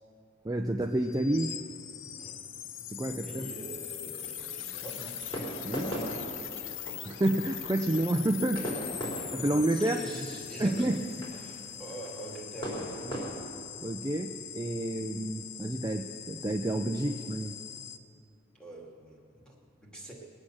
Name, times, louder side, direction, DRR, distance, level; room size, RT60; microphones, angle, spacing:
voice 1, 0.4-1.5 2.9-3.5 5.6-5.9 7.0-9.0 9.3-10.0 10.6-11.0 13.8-17.5, right 1 dB, 20° right, 4 dB, 0.5 m, -29 dB
sound 1, 0.8-18.0, left 9 dB, 80° left, 0.7 m, -41 dB
voice 2, 3.1-5.2 9.1-11.0 11.4-13.2 18.5-20.1, right 1 dB, 5° left, -3 dB, 2.4 m, -45 dB
sound 2, 4.8-13.3, equal, 25° left, 3.4 m, -40 dB
21.0 x 8.6 x 6.4 m, 2.4 s
head